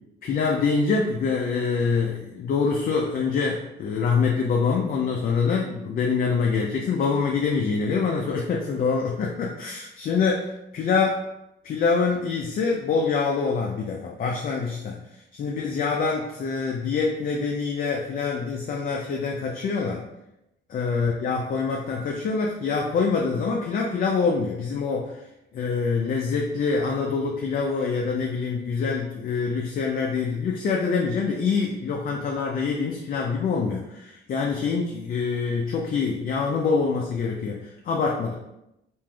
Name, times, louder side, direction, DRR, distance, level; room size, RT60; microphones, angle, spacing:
voice 1, 0.2-11.3 11.6-15.0 15.3-20.0 20.7-25.2 25.5-38.3, left 5 dB, 45° left, 0 dB, 0.4 m, -25 dB
3.2 x 2.5 x 2.3 m, 0.88 s
cardioid pair, 90°, 20 cm